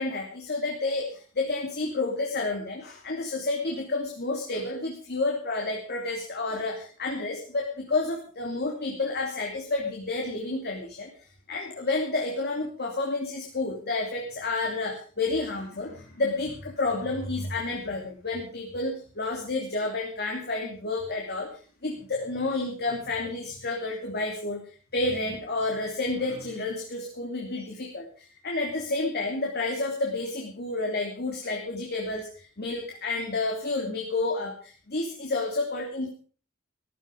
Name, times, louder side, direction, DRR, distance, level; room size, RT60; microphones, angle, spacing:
voice 1, 0.0-21.5 21.8-24.6 24.9-36.1, left 3 dB, 50° left, 1 dB, 2.9 m, -30 dB
14.0 x 14.0 x 5.2 m, 0.40 s
head